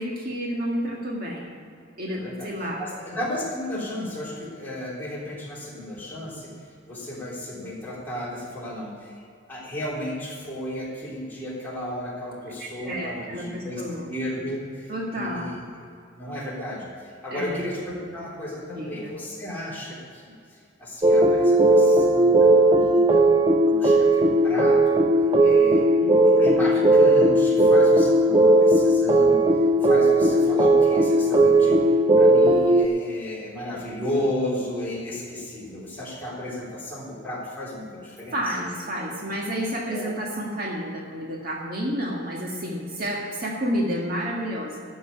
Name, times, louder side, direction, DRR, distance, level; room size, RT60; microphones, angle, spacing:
voice 1, 0.0-1.5 2.0-2.8 12.6-14.1 14.9-15.5 17.3-17.6 18.7-19.1 26.0-26.5 38.3-44.8, equal, 45° right, -2 dB, 1.8 m, -30 dB
voice 2, 2.1-9.1 9.5-13.8 14.1-15.6 16.2-23.3 23.6-25.0 25.4-25.9 26.4-31.8 32.2-38.5 39.9-40.1, left 1 dB, 10° left, -7 dB, 3.5 m, -34 dB
sound 1, 21.0-32.9, right 1 dB, 25° right, 0.5 m, -17 dB
12.5 x 6.2 x 8.7 m, 2.4 s
head